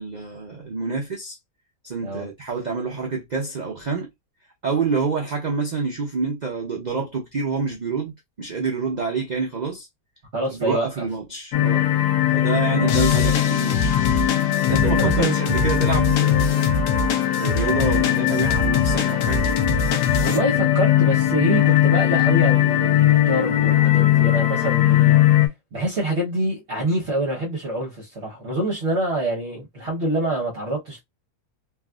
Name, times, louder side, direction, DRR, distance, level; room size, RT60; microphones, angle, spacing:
voice 1, 0.0-1.4 1.8-4.1 4.6-8.1 8.4-9.9 10.5-11.9 12.3-14.0 14.7-16.8 17.4-19.5, right 5 dB, 85° right, 0.3 m, -27 dB
voice 2, 10.3-11.1 12.7-13.0 14.7-15.4 20.2-25.2 25.7-31.0, right 1 dB, 50° right, 1.0 m, -26 dB
sound 1, 11.5-25.5, left 13 dB, 85° left, 1.2 m, -19 dB
sound 2, 12.9-20.4, left 3 dB, 65° left, 0.9 m, -25 dB
3.4 x 2.4 x 2.3 m
omnidirectional pair, 1.7 m